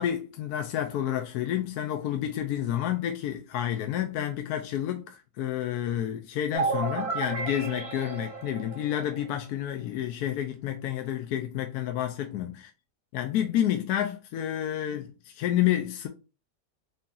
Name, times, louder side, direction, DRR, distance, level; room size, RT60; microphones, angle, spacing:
voice 1, 0.0-12.7 13.1-16.1, left 11 dB, 75° left, 1.1 m, -30 dB
sound 1, 6.5-9.3, right 4 dB, 40° right, 0.5 m, -32 dB
4.1 x 3.9 x 2.5 m
omnidirectional pair, 1.7 m